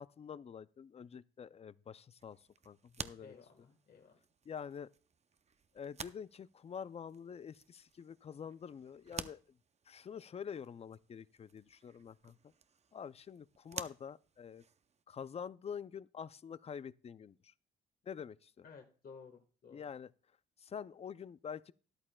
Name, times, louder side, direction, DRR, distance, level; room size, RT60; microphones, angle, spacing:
voice 1, 0.0-3.3 4.5-4.9 5.7-9.4 9.9-12.4 12.9-14.6 15.1-17.5 18.0-18.7 19.7-20.1 20.6-21.7, left 7 dB, 30° left, 0.4 m, -47 dB
sound 1, 2.2-15.0, right 6 dB, 35° right, 0.6 m, -52 dB
voice 2, 3.2-4.2 18.6-19.8, left 5 dB, 45° left, 1.5 m, -55 dB
13.0 x 11.0 x 2.3 m
cardioid pair, 90°, 20 cm